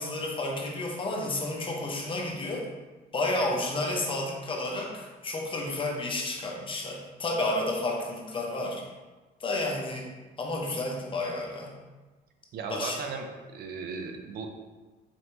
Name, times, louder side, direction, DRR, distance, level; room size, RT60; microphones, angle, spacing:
voice 1, 0.0-2.6 3.1-8.8 9.4-10.1 10.4-11.8 12.7-13.0, left 2 dB, 30° left, 0 dB, 0.8 m, -31 dB
voice 2, 12.5-14.5, right 4 dB, 65° right, 4 dB, 0.6 m, -36 dB
4.3 x 3.2 x 3.0 m, 1.2 s
cardioid pair, 110°, 17 cm